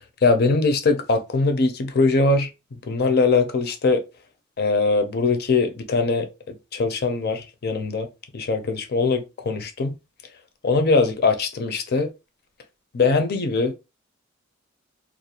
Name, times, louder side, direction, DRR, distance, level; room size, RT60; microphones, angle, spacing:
voice 1, 0.2-2.5 2.9-4.0 4.6-8.1 8.3-9.9 10.6-12.1 12.9-13.7, left 3 dB, 50° left, 0.5 m, -21 dB
2.5 x 2.1 x 2.7 m
head